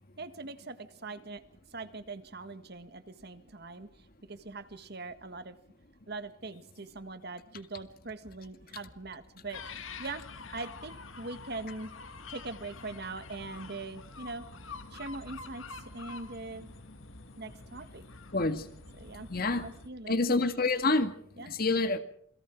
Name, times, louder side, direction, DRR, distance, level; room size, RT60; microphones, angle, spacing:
voice 1, 0.2-1.4 1.7-5.6 6.1-10.2 10.5-11.9 12.3-14.5 14.9-16.7 17.4-18.0 19.0-19.3 19.6-20.1 21.4-21.5, right 3 dB, 50° right, 11 dB, 1.6 m, -42 dB
sound 1, 9.5-19.9, left 4 dB, 75° left, 1.9 m, -47 dB
voice 2, 18.3-18.7 19.3-19.7 20.1-21.1 21.5-22.0, left 3 dB, 45° left, 9 dB, 1.9 m, -27 dB
28.0 x 22.0 x 4.6 m, 0.64 s
head